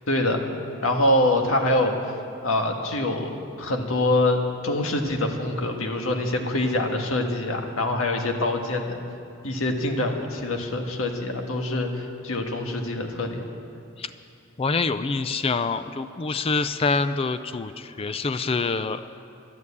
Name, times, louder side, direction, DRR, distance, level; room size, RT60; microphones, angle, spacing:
voice 1, 0.1-0.4 0.8-1.9 2.4-9.0 9.4-13.5, left 1 dB, 80° left, 3 dB, 1.6 m, -25 dB
voice 2, 14.6-19.0, left 4 dB, 30° left, 11 dB, 0.4 m, -26 dB
12.0 x 11.0 x 8.4 m, 2.5 s
head